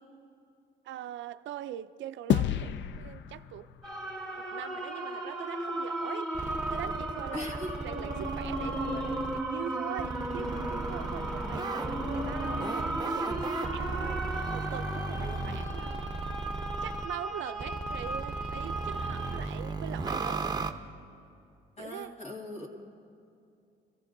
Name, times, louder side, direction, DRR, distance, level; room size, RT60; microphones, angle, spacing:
voice 1, 0.8-3.7 4.3-16.0 16.5-20.5 21.8-22.1, right 12 dB, 70° right, 0.4 m, -42 dB
sound 1, 2.3-4.9, left 9 dB, 70° left, 0.4 m, -32 dB
sound 2, 3.8-19.4, right 1 dB, ahead, 2.1 m, -35 dB
sound 3, 6.3-9.4 10.0-17.1 17.6-20.7, right 3 dB, 20° right, 0.7 m, -36 dB
voice 2, 7.3-7.9 15.2-15.6 21.8-22.8, left 1 dB, 35° left, 2.2 m, -41 dB
23.0 x 15.0 x 2.6 m
cardioid pair, 90°, 20 cm